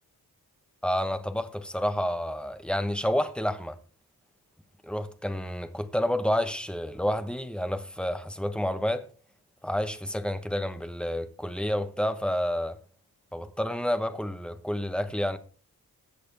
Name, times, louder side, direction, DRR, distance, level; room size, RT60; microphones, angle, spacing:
voice 1, 0.8-3.7 4.8-9.1 9.6-12.8 13.3-15.4, equal, 5° left, 1.1 m, -29 dB
22.0 x 7.6 x 3.4 m
wide cardioid pair, 120°, 38 cm